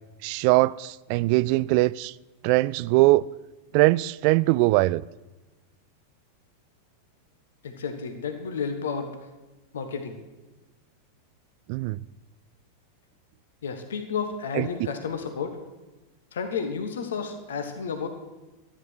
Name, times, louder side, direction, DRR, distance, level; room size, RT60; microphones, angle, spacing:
voice 1, 0.2-2.1 2.4-3.2 3.7-5.0 11.7-12.0 14.6-14.7, right 20 dB, 45° right, 0.3 m, -21 dB
voice 2, 7.6-9.2 9.7-10.2 13.6-15.6 16.3-18.1, left 6 dB, 65° left, 1.4 m, -31 dB
13.5 x 10.5 x 6.3 m
figure-of-eight pair, 90°, 0 cm